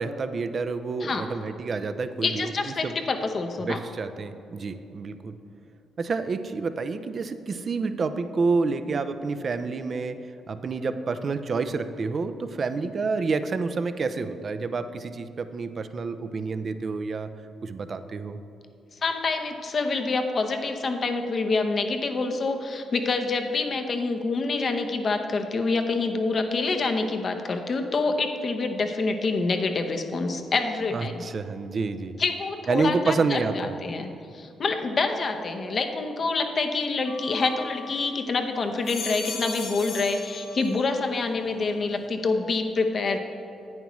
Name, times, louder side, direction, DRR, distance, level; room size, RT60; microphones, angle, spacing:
voice 1, 0.0-2.5 2.8-3.0 3.6-5.4 6.0-10.2 10.5-17.3 17.6-18.4 30.9-32.2 32.7-33.8, right 4 dB, 50° right, 10 dB, 0.5 m, -28 dB
voice 2, 2.2-3.8 19.0-31.2 32.2-43.2, left 3 dB, 50° left, 5 dB, 0.9 m, -27 dB
sound 1, 37.1-38.2 38.6-41.1 41.4-42.0, left 4 dB, 75° left, 2.2 m, -38 dB
10.5 x 9.1 x 3.1 m, 2.7 s
supercardioid pair, 55°, 0 cm